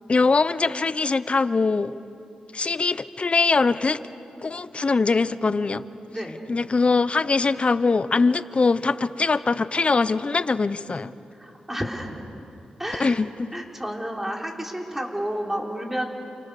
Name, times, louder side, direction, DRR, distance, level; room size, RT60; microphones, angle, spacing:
voice 1, 0.1-1.9 2.5-4.0 4.4-5.8 6.5-11.1 13.0-13.5, left 4 dB, 40° left, 1.0 m, -22 dB
voice 2, 6.1-6.4 11.4-12.2 12.8-13.2 13.5-16.1, equal, 10° right, 4.8 m, -30 dB
29.5 x 28.5 x 6.8 m
cardioid pair, 55°, 3 cm